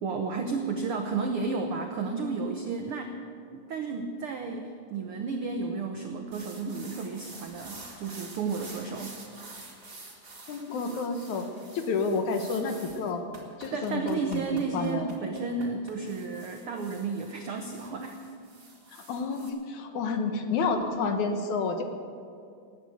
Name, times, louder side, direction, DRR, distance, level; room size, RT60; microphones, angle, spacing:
voice 1, 0.0-3.2 3.5-9.3 13.7-18.2, right 4 dB, 80° right, 4 dB, 1.2 m, -32 dB
sound 1, 6.3-19.5, right 2 dB, 25° right, 1.6 m, -48 dB
voice 2, 10.5-11.5 11.7-13.3 13.6-15.1 19.1-21.8, left 4 dB, 70° left, 6 dB, 2.4 m, -30 dB
19.0 x 8.4 x 7.9 m, 2.4 s
omnidirectional pair, 3.8 m